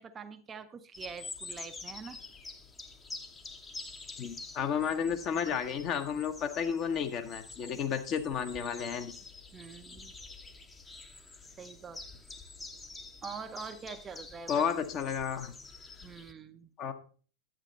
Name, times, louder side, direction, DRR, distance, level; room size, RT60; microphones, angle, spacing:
voice 1, 0.0-2.2 9.5-10.1 11.6-12.0 13.2-14.6 16.0-16.7, right 5 dB, 20° right, 9 dB, 0.7 m, -44 dB
sound 1, 0.9-16.3, left 3 dB, 15° left, 0.9 m, -47 dB
voice 2, 4.2-9.1 14.5-15.5 16.8-16.9, left 7 dB, 35° left, 6 dB, 1.1 m, -32 dB
10.5 x 8.9 x 4.0 m, 0.40 s
figure-of-eight pair, 90°, 0 cm